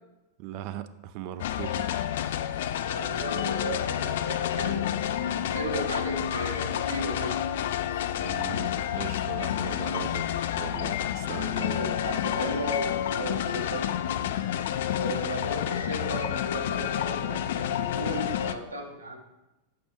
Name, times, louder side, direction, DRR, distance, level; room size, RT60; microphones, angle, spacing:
voice 1, 0.4-2.6 6.1-6.3 8.2-12.2, right 11 dB, 45° right, 12 dB, 0.4 m, -40 dB
sound 1, 1.4-18.5, left 10 dB, 55° left, 0.3 m, -29 dB
voice 2, 2.9-7.4 11.8-13.9 14.9-19.2, right 1 dB, 80° right, 0 dB, 1.3 m, -35 dB
6.8 x 5.9 x 3.3 m, 0.97 s
figure-of-eight pair, 90°, 0 cm